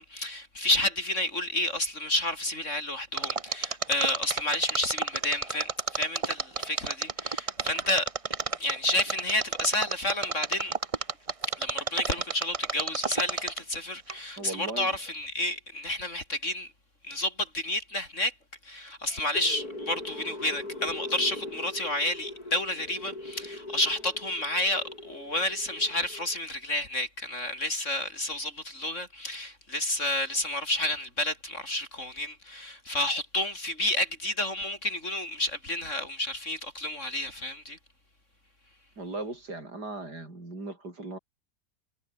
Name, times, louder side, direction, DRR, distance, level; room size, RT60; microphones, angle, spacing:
voice 1, 0.0-8.1 8.6-10.7 11.6-16.7 17.0-18.3 18.6-37.8, left 1 dB, 45° left, 7.6 m, -30 dB
Mechanisms, 3.2-13.7 14.1-14.2, right 4 dB, 25° right, 0.8 m, -30 dB
voice 2, 14.4-14.9 39.0-41.2, right 2 dB, 70° right, 6.9 m, -38 dB
sound 1, 19.1-26.3, left 2 dB, 60° left, 8.5 m, -41 dB
omnidirectional pair, 1.8 m